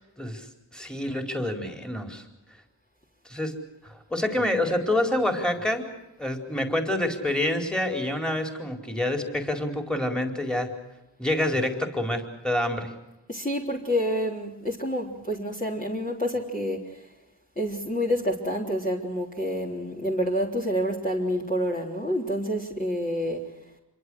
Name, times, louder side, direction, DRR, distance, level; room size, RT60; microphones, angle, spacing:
voice 1, 0.2-2.2 3.2-3.6 3.8-5.9 6.2-10.7 11.2-12.9, left 1 dB, ahead, 4 dB, 4.4 m, -27 dB
voice 2, 13.3-17.1 17.6-23.4, equal, 20° left, -2 dB, 3.8 m, -28 dB
27.0 x 23.5 x 6.4 m, 0.97 s
wide cardioid pair, 70°, 44 cm